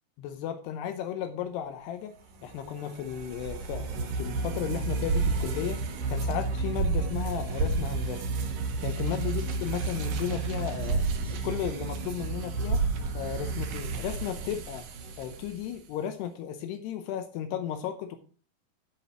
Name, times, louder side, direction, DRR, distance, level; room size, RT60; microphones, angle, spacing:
voice 1, 0.2-2.2 2.4-5.8 6.1-8.3 8.8-12.8 13.1-14.8 15.2-18.2, left 9 dB, 80° left, 8 dB, 2.4 m, -34 dB
sound 1, 2.3-15.7, right 3 dB, 70° right, 2.1 m, -31 dB
11.0 x 4.9 x 5.8 m, 0.40 s
omnidirectional pair, 5.7 m